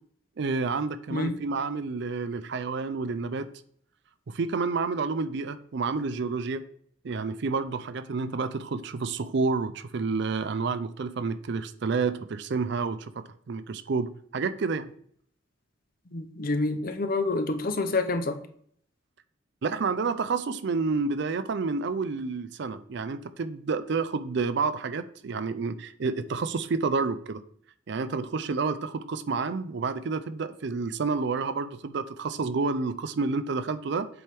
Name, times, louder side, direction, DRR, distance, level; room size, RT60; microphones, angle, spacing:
voice 1, 0.4-3.5 4.3-6.6 7.0-14.9 19.6-27.4 27.9-34.1, right 4 dB, 60° right, 13 dB, 0.4 m, -29 dB
voice 2, 16.1-18.4, left 2 dB, 45° left, 8 dB, 0.7 m, -27 dB
7.7 x 3.5 x 4.4 m, 0.62 s
head